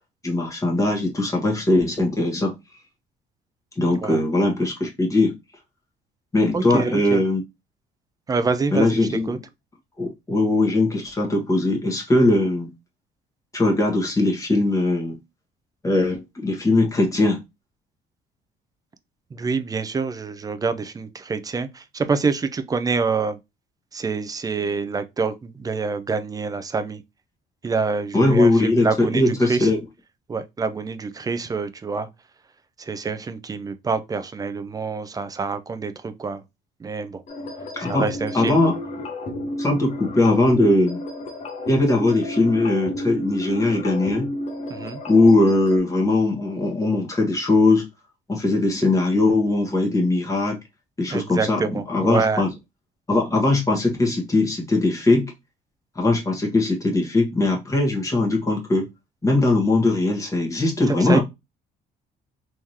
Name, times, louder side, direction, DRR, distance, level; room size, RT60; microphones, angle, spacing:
voice 1, 0.2-2.6 3.7-5.3 6.3-7.4 8.7-9.4 10.0-12.7 13.5-15.2 15.8-17.4 28.1-29.8 37.7-38.1 38.3-38.8 39.6-41.0 41.7-44.3 45.1-47.9 48.3-50.6 51.0-52.5 53.1-55.3 55.9-58.9 59.2-61.2, left 2 dB, 20° left, 1.4 m, -20 dB
voice 2, 6.5-7.2 8.3-9.0 9.3-9.4 19.3-23.4 23.9-27.0 27.6-29.7 30.3-32.1 32.8-36.4 36.8-37.2 37.9-38.5 44.7-45.0 51.1-52.4 60.9-61.2, right 4 dB, 20° right, 0.5 m, -26 dB
sound 1, 37.3-45.8, left 1 dB, 40° left, 0.9 m, -31 dB
3.6 x 3.1 x 2.8 m
cardioid pair, 110°, 17 cm